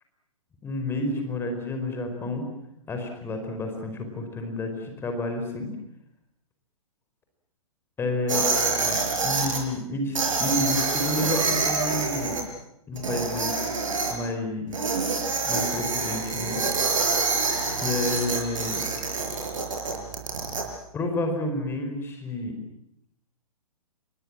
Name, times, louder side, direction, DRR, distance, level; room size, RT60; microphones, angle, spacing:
voice 1, 0.6-2.4 2.9-5.7 8.0-12.4 12.9-13.5 14.1-14.8 15.4-16.6 17.7-18.8 20.9-22.6, left 2 dB, 10° left, 5 dB, 4.9 m, -30 dB
sound 1, 8.3-9.6 10.1-12.4 13.0-14.1 14.7-20.6, right 4 dB, 60° right, 5.6 m, -26 dB
28.5 x 22.0 x 7.6 m, 0.78 s
figure-of-eight pair, 120°, 19 cm